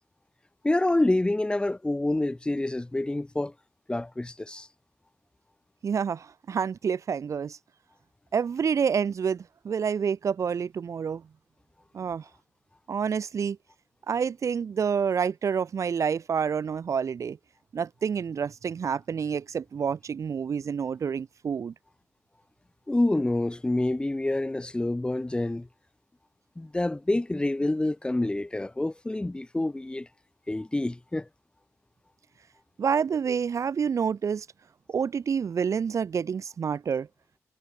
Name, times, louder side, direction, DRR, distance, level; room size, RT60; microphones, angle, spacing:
voice 1, 0.6-3.5 3.9-4.7 22.9-25.7 26.5-30.1 30.5-31.3, left 2 dB, 15° left, 6.9 m, -27 dB
voice 2, 5.8-7.6 8.3-11.2 11.9-12.3 12.9-13.6 14.1-17.4 17.7-21.7 32.8-34.5 34.9-37.1, right 6 dB, 60° right, 1.3 m, -28 dB
cardioid pair, 90°, 6 cm